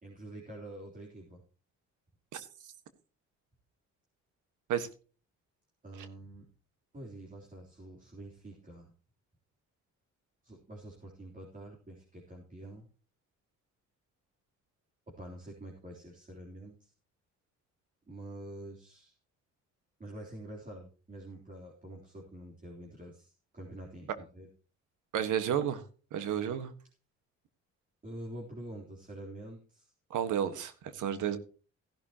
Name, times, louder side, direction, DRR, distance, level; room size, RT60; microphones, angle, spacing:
voice 1, 0.0-1.4 5.8-6.5 6.9-8.9 10.4-12.9 15.1-16.9 18.1-19.2 20.0-24.5 28.0-29.9, right 1 dB, 25° right, 3.5 m, -47 dB
voice 2, 25.1-25.8 26.1-26.7 30.1-31.4, right 9 dB, 85° right, 1.6 m, -31 dB
15.5 x 11.5 x 2.9 m
cardioid pair, 90°, 30 cm